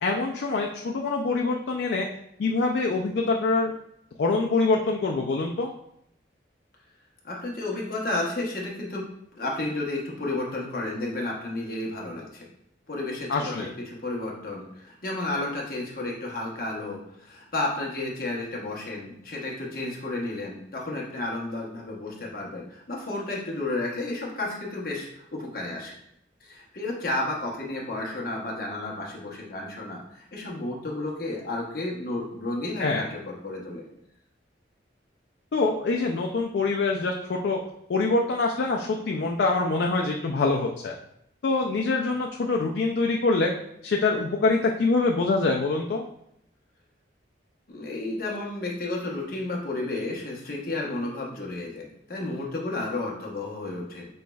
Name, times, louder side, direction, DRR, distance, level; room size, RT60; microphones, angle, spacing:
voice 1, 0.0-2.1 2.4-3.7 4.2-5.7 13.3-13.7 32.8-33.0 35.5-37.6 37.9-40.9 41.4-43.5 43.8-46.0, left 3 dB, 65° left, 1 dB, 0.4 m, -25 dB
voice 2, 7.2-9.1 9.3-12.5 12.9-25.9 26.4-33.9 47.7-54.1, left 2 dB, 50° left, -2 dB, 0.9 m, -32 dB
5.4 x 3.0 x 2.3 m, 0.75 s
head